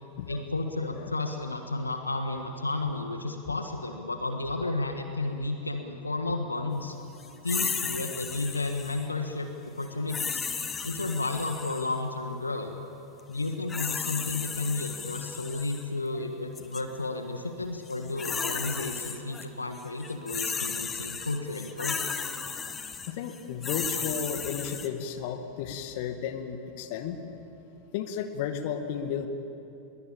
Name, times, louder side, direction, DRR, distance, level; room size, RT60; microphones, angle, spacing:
voice 1, 0.3-7.0 7.4-10.5 10.8-12.7 13.3-22.1, left 2 dB, 80° left, 6 dB, 1.5 m, -32 dB
sound 1, 7.5-9.1 10.1-12.0 13.4-15.8 16.6-16.8 17.9-19.5 19.8-24.9, left 5 dB, 20° left, 1.6 m, -34 dB
voice 2, 23.1-27.2 27.9-29.3, left 8 dB, 50° left, 7 dB, 2.0 m, -33 dB
22.0 x 21.5 x 8.7 m, 2.9 s
figure-of-eight pair, 90°, 0 cm